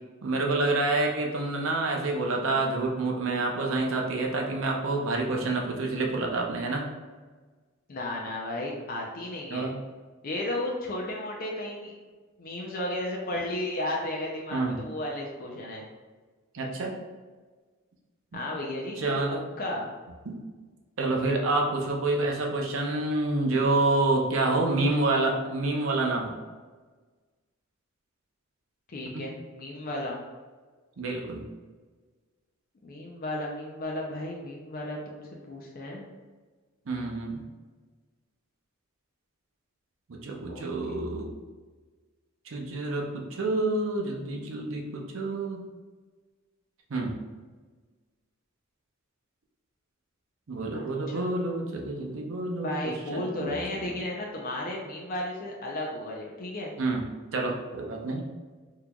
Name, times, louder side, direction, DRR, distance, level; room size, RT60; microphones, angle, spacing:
voice 1, 0.2-6.8 9.5-9.8 14.5-14.8 16.5-16.9 18.3-18.4 19.0-19.5 20.3-20.4 21.0-26.4 29.1-29.2 31.0-31.4 36.9-37.4 40.1-41.3 42.5-45.6 46.9-47.2 50.5-53.9 56.8-57.1 57.3-58.3, right 2 dB, 65° right, 1 dB, 0.6 m, -28 dB
voice 2, 7.9-9.7 10.2-11.9 12.4-15.8 18.3-19.1 19.6-19.9 28.9-30.2 32.8-36.0 40.4-41.0 50.7-51.3 52.6-56.7, left 1 dB, 45° left, -2 dB, 0.5 m, -34 dB
3.7 x 3.0 x 2.3 m, 1.4 s
head